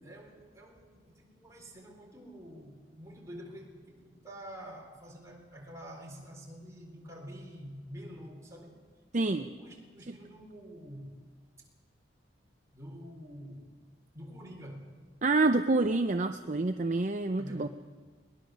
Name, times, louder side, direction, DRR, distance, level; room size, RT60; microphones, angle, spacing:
voice 1, 0.0-8.8 9.2-11.2 12.7-13.7 14.1-14.9 17.4-17.7, equal, 15° right, 0 dB, 4.1 m, -47 dB
voice 2, 9.1-9.4 10.1-10.2 15.2-17.7, right 3 dB, 40° right, 8 dB, 0.6 m, -27 dB
21.5 x 21.0 x 6.4 m, 1.5 s
head